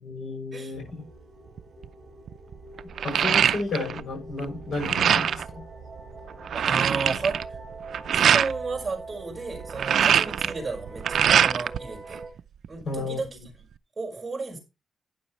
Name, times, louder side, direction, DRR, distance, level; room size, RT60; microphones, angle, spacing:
voice 1, 0.0-1.0 3.0-5.6 12.8-13.2, left 3 dB, 55° left, 6.8 m, -32 dB
sound 1, 0.7-12.3, right 3 dB, 40° right, 5.1 m, -43 dB
sound 2, 1.6-1.8 2.3-4.0 4.3-5.5 6.0-6.1 6.3-8.5 9.5-11.8 12.1-13.0, right 8 dB, 65° right, 0.5 m, -23 dB
voice 2, 6.5-7.4 8.1-12.2 12.7-13.3 14.0-14.6, right 4 dB, 20° right, 5.1 m, -32 dB
12.5 x 9.6 x 3.2 m
wide cardioid pair, 170°, 0 cm